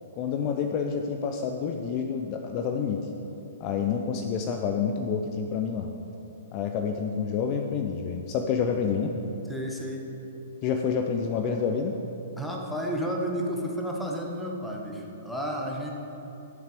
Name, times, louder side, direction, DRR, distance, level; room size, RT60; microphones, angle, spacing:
voice 1, 0.2-3.1 3.6-5.9 6.5-9.2 10.6-11.9, left 6 dB, 35° left, 4 dB, 0.7 m, -28 dB
voice 2, 9.5-10.1 12.4-15.9, equal, 5° left, -1 dB, 1.5 m, -32 dB
12.5 x 7.4 x 5.2 m, 2.9 s
figure-of-eight pair, 115°, 0 cm